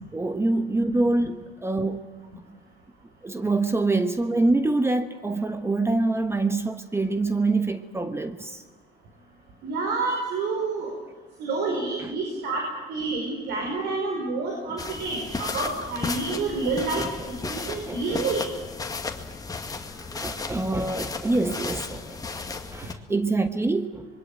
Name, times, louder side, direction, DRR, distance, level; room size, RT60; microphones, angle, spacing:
voice 1, 0.1-2.1 3.2-8.6 12.0-12.1 17.0-18.2 20.0-22.4 22.7-24.1, right 2 dB, 15° right, 1.2 m, -26 dB
voice 2, 9.6-10.9 11.4-18.4, right 3 dB, 85° right, 5.3 m, -28 dB
sound 1, 14.8-22.9, left 4 dB, 20° left, 2.1 m, -34 dB
25.5 x 22.5 x 9.1 m
cardioid pair, 110°, 17 cm